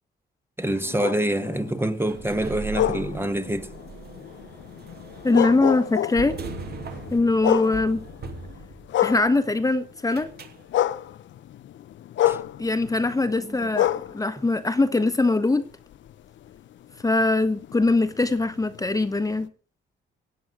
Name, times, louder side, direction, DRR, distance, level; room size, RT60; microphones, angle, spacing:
sound 1, 0.6-9.9 10.2-15.4 15.9-19.5, left 12 dB, 70° left, 0.9 m, -30 dB
voice 1, 0.6-3.7 12.2-12.4 13.4-13.7 14.4-14.5, right 1 dB, 10° right, 1.3 m, -26 dB
sound 2, 2.1-9.1 10.1-10.6, right 5 dB, 55° right, 2.8 m, -39 dB
voice 2, 5.2-6.4 7.1-8.0 9.0-10.3 12.6-15.6 17.0-19.5, left 2 dB, 15° left, 1.3 m, -22 dB
16.5 x 9.9 x 6.2 m
cardioid pair, 90°, 20 cm